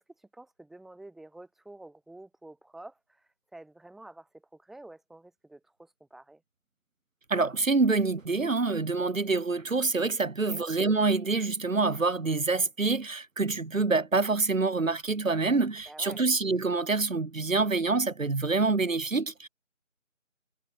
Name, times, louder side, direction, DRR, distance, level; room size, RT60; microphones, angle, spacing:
voice 1, 0.0-6.4 10.5-10.6 15.9-16.2, right 2 dB, ahead, 6.4 m, -49 dB
voice 2, 7.3-19.5, right 3 dB, 80° right, 1.2 m, -26 dB
figure-of-eight pair, 165°, 39 cm